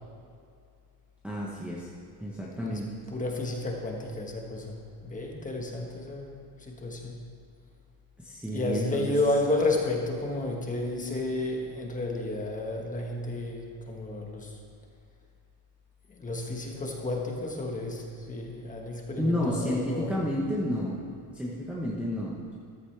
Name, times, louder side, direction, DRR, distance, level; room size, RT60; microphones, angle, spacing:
voice 1, 1.2-1.9 2.2-2.9 8.2-9.2 19.2-21.0 21.3-22.5, equal, 5° right, -6 dB, 0.9 m, -31 dB
voice 2, 3.1-7.2 8.5-14.6 16.2-20.2, left 2 dB, 15° left, 0 dB, 1.4 m, -32 dB
14.5 x 13.5 x 3.4 m, 2.3 s
cardioid pair, 170°, 48 cm